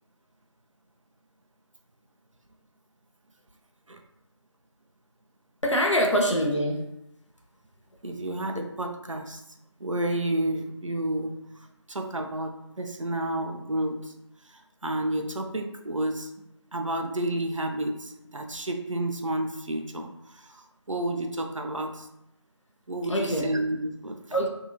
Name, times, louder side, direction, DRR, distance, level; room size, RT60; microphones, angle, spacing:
voice 1, 5.6-6.9 23.1-23.5 24.3-24.5, equal, 75° left, 0 dB, 0.6 m, -24 dB
voice 2, 8.0-9.4 9.8-14.1 14.4-16.3 16.7-22.1 22.9-24.2, right 1 dB, 85° right, 4 dB, 0.5 m, -31 dB
2.7 x 2.4 x 2.6 m, 0.83 s
figure-of-eight pair, 175°, 16 cm